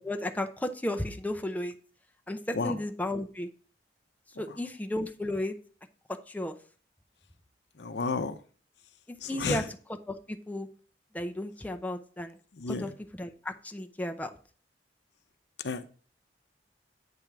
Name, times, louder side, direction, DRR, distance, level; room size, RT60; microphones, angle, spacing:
voice 1, 0.0-1.7 2.3-3.5 4.4-5.6 6.3-6.6 9.1-9.6 10.1-10.7 11.1-12.4 12.7-14.3, left 1 dB, 10° left, 0.5 m, -34 dB
voice 2, 7.8-8.4 9.2-9.6 12.5-12.9 15.6-15.9, left 4 dB, 75° left, 0.6 m, -31 dB
8.3 x 3.5 x 5.8 m
head